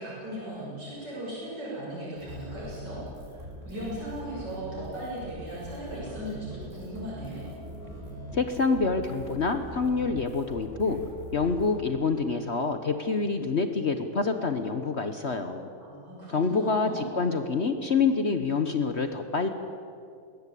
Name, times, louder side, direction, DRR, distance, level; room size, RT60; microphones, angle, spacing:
voice 1, 0.0-7.4 15.8-17.1, right 1 dB, 75° right, -7 dB, 6.7 m, -38 dB
sound 1, 2.2-11.8, equal, 30° right, 5.7 m, -42 dB
voice 2, 8.3-11.0 11.3-15.7 16.3-19.5, left 4 dB, 45° left, 8 dB, 1.1 m, -27 dB
21.5 x 18.5 x 8.4 m, 2.5 s
omnidirectional pair, 1.9 m